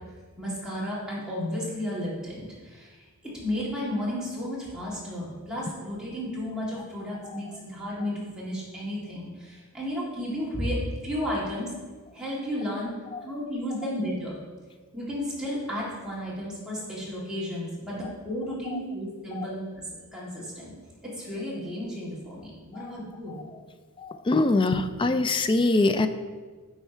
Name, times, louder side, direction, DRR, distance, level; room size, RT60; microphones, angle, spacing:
voice 1, 0.4-3.0 3.3-11.7 12.1-12.9 13.2-14.4 14.9-19.8 20.1-20.7 21.0-23.4, equal, 5° right, -7 dB, 2.0 m, -33 dB
voice 2, 24.3-26.1, left 2 dB, 20° left, 10 dB, 0.3 m, -22 dB
10.0 x 3.4 x 4.4 m, 1.4 s
head